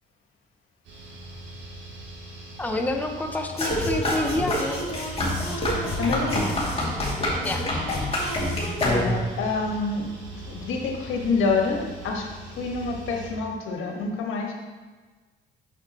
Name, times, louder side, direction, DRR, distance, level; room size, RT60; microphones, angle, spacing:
sound 1, 0.8-13.3, right 2 dB, 70° right, 2.1 m, -41 dB
voice 1, 2.6-4.9 7.4-7.7, left 2 dB, 10° left, 4 dB, 0.7 m, -28 dB
sound 2, 3.6-9.4, left 1 dB, 30° left, 2.6 m, -26 dB
voice 2, 5.6-6.5 8.8-10.1 10.5-14.5, left 4 dB, 85° left, 1 dB, 1.4 m, -27 dB
8.6 x 6.7 x 3.0 m, 1.3 s
cardioid pair, 90°, 20 cm